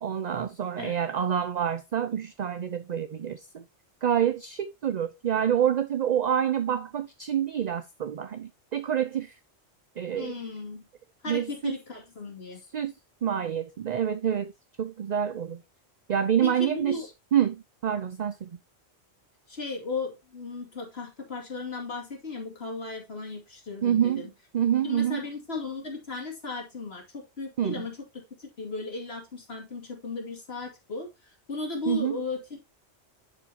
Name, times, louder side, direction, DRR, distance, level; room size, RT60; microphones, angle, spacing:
voice 1, 0.0-3.6 4.0-9.3 10.0-10.3 11.3-11.8 12.7-12.9 13.2-14.5 14.8-15.6 16.1-17.0 17.3-18.5 23.8-24.2 24.5-25.2 27.6-27.7 31.9-32.2, right 9 dB, 50° right, 0.6 m, -27 dB
voice 2, 10.1-10.9 11.2-12.6 16.4-17.1 19.5-24.3 24.8-32.6, left 4 dB, 65° left, 2.7 m, -36 dB
10.5 x 5.1 x 2.9 m
omnidirectional pair, 1.1 m